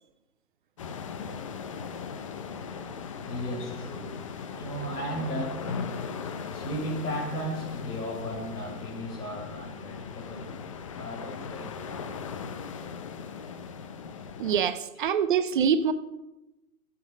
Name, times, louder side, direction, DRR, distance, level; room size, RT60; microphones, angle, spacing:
sound 1, 0.8-14.6, left 6 dB, 25° left, 0.5 m, -39 dB
voice 1, 2.5-13.9 15.0-15.1, equal, 85° left, 0 dB, 5.5 m, -37 dB
voice 2, 14.4-15.9, right 7 dB, 35° right, 12 dB, 0.6 m, -25 dB
16.5 x 8.6 x 5.1 m, 0.99 s
hypercardioid pair, 135°, 45 cm